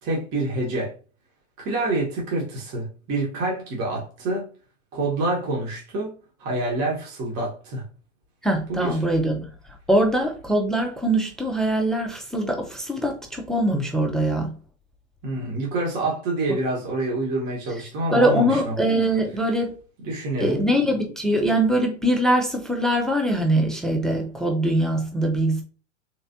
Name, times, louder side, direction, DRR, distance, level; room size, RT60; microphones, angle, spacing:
voice 1, 0.0-0.9 1.6-4.4 4.9-7.8 8.7-9.0 15.2-18.8 20.0-20.6, right 2 dB, 40° right, 1.3 m, -27 dB
voice 2, 8.4-9.5 9.9-14.5 18.1-19.7 20.4-25.6, right 1 dB, ahead, 0.4 m, -22 dB
3.3 x 3.2 x 2.7 m
hypercardioid pair, 105°, 37 cm